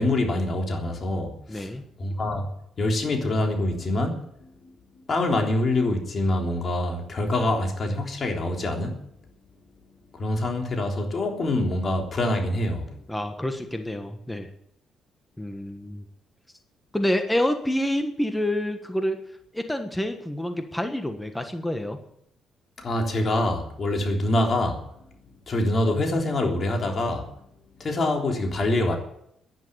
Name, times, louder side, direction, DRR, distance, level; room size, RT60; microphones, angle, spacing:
voice 1, 0.0-1.7 2.0-2.5 2.8-4.2 5.1-8.9 10.1-12.9 22.8-24.8 25.5-27.3 27.8-29.0, left 1 dB, 45° left, 3.4 m, -25 dB
voice 2, 1.5-1.8 13.1-14.5 15.4-16.0 16.9-19.2 19.5-22.0, left 1 dB, 5° left, 1.5 m, -27 dB
10.5 x 10.5 x 8.7 m
cardioid pair, 90°, 0 cm